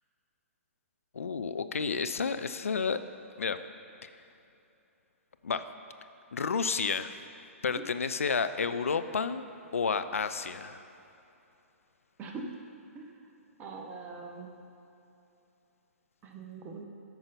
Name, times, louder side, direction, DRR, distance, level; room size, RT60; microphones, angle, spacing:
voice 1, 1.1-3.0 3.4-3.6 4.0-4.1 5.4-5.6 6.3-7.1 7.6-9.4 9.7-10.8, left 5 dB, 75° left, 11 dB, 0.4 m, -30 dB
voice 2, 13.6-14.5 16.2-16.8, right 4 dB, 25° right, 2 dB, 0.9 m, -42 dB
9.1 x 5.5 x 5.2 m, 2.8 s
figure-of-eight pair, 120°, 8 cm